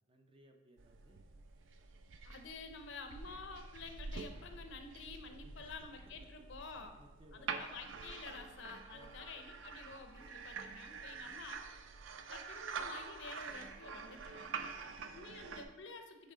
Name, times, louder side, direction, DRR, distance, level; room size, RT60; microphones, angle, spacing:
voice 1, 0.1-1.3 5.3-6.3 6.7-7.7 8.9-9.2 11.1-11.3 14.6-15.0, right 1 dB, 30° right, 4 dB, 0.6 m, -64 dB
sound 1, 0.8-15.7, right 5 dB, 75° right, 0.4 m, -47 dB
voice 2, 2.2-7.0 7.3-11.6 12.3-14.6 15.1-16.3, left 4 dB, 65° left, 6 dB, 0.6 m, -50 dB
8.3 x 3.2 x 3.8 m, 1.2 s
head